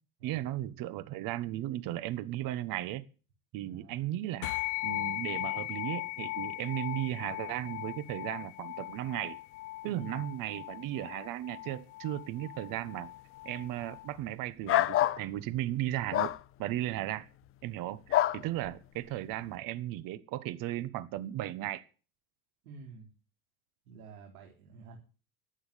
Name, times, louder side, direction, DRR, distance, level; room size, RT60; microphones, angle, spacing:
voice 1, 0.2-3.0 3.5-4.5 4.8-9.4 9.8-13.1 13.4-17.3 17.6-21.8, right 14 dB, 50° right, 15 dB, 1.2 m, -36 dB
voice 2, 3.7-4.1 9.9-10.2 18.4-18.6 22.6-23.1 23.9-25.0, right 4 dB, 90° right, 0 dB, 4.0 m, -49 dB
sound 1, 4.4-14.1, left 18 dB, 80° left, 1.0 m, -39 dB
sound 2, 14.7-15.2 16.1-16.4 18.1-18.4, left 14 dB, 30° left, 0.6 m, -26 dB
12.0 x 8.7 x 8.3 m, 0.36 s
supercardioid pair, 120°, 44 cm